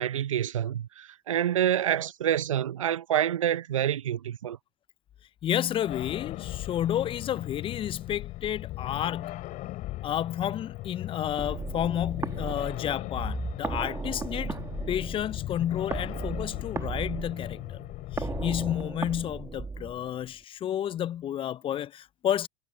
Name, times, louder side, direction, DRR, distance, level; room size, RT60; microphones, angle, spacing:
voice 1, 0.0-4.6, right 10 dB, 80° right, 0.7 m, -27 dB
voice 2, 5.4-9.5 10.0-14.6 14.9-17.8 18.1-22.5, left 11 dB, 35° left, 0.6 m, -31 dB
sound 1, 5.9-18.8, left 17 dB, 50° left, 6.7 m, -38 dB
sound 2, 11.4-20.3, right 4 dB, 15° right, 1.8 m, -36 dB
hypercardioid pair, 75°, 16 cm